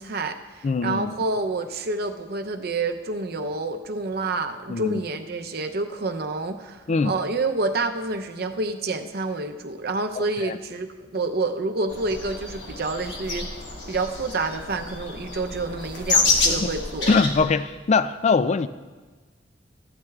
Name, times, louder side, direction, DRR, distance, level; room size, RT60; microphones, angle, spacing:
voice 1, 0.0-13.5 13.9-17.1, right 3 dB, 60° right, 6 dB, 0.6 m, -28 dB
voice 2, 0.6-1.2 4.7-5.0 6.9-7.2 10.2-10.6 16.4-16.7 17.1-18.7, left 4 dB, 40° left, 13 dB, 0.3 m, -22 dB
sound 1, 11.9-17.4, left 3 dB, 75° left, 1.3 m, -27 dB
14.5 x 11.5 x 2.4 m, 1.3 s
head